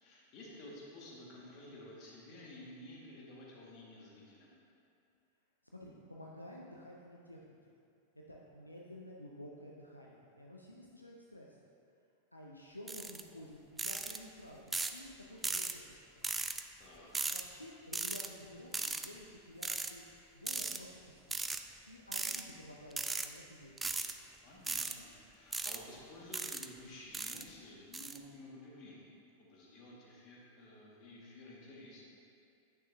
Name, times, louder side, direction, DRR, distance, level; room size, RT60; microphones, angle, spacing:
voice 1, 0.0-4.5 16.8-17.1 24.4-29.1 29.4-32.0, left 1 dB, 40° left, -4 dB, 1.6 m, -52 dB
voice 2, 5.7-7.4 7.7-7.8 8.2-11.6 12.3-15.8 16.2-16.3 17.3-21.5 21.9-24.3, left 1 dB, 85° left, -2 dB, 0.5 m, -52 dB
sound 1, 12.9-13.2 13.8-14.2 14.7-15.0 15.4-15.7 16.2-16.6 17.1-17.4 17.9-18.3 18.7-19.1 19.6-19.9 20.5-20.8 21.3-21.6 22.1-22.4 22.9-23.3 23.8-24.1 24.7-24.9 25.5-25.8 26.3-26.7 27.1-27.4 27.9-28.2, right 3 dB, 10° right, 0.3 m, -37 dB
9.0 x 6.2 x 2.6 m, 2.5 s
figure-of-eight pair, 90°, 0 cm